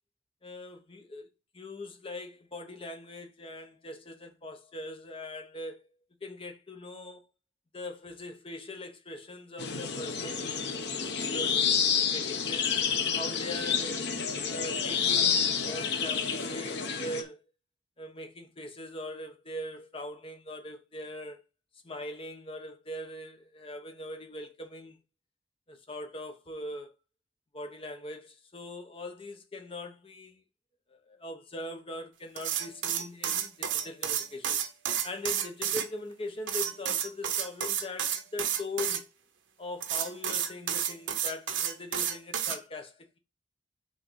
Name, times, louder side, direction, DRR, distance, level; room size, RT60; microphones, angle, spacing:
voice 1, 0.4-1.3 1.5-5.8 6.2-7.2 7.7-10.6 11.0-11.6 12.1-12.7 13.1-14.0 14.5-17.4 18.0-21.4 21.8-25.0 25.7-26.9 27.5-30.4 30.9-34.6 35.0-39.1 39.6-43.2, left 1 dB, 30° left, 1.0 m, -41 dB
sound 1, 9.6-17.2, left 6 dB, 60° left, 0.9 m, -29 dB
sound 2, 32.4-35.9 36.5-39.0 39.8-42.6, right 9 dB, 75° right, 0.9 m, -31 dB
6.4 x 3.9 x 5.1 m
head